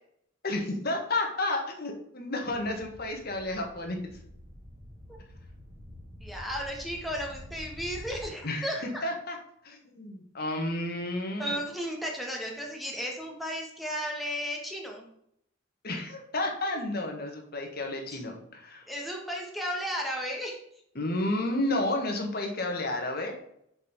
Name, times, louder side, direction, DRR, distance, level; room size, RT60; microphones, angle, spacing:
voice 1, 0.4-4.2 8.4-9.4 9.6-11.5 15.8-18.9 20.9-23.4, left 1 dB, 50° left, 2 dB, 1.5 m, -31 dB
sound 1, 2.4-8.3, left 1 dB, 25° right, 1.8 m, -47 dB
voice 2, 6.2-9.1 11.4-15.1 18.1-18.2 18.9-20.6, equal, ahead, -1 dB, 1.4 m, -34 dB
6.5 x 4.5 x 5.1 m, 0.73 s
head